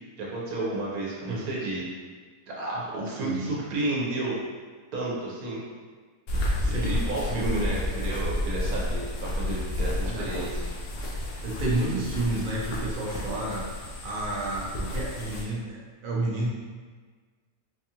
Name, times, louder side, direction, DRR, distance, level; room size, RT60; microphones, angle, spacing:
voice 1, 0.2-1.9 2.5-4.4 4.9-5.6 6.6-10.6, right 2 dB, 80° right, -5 dB, 1.3 m, -31 dB
sound 1, 6.3-15.4, left 1 dB, 90° left, 1.2 m, -31 dB
voice 2, 6.6-7.0 7.3-7.4 10.1-10.3 11.4-16.5, right 2 dB, 45° right, -5 dB, 0.8 m, -31 dB
4.5 x 2.4 x 2.8 m, 1.5 s
omnidirectional pair, 1.5 m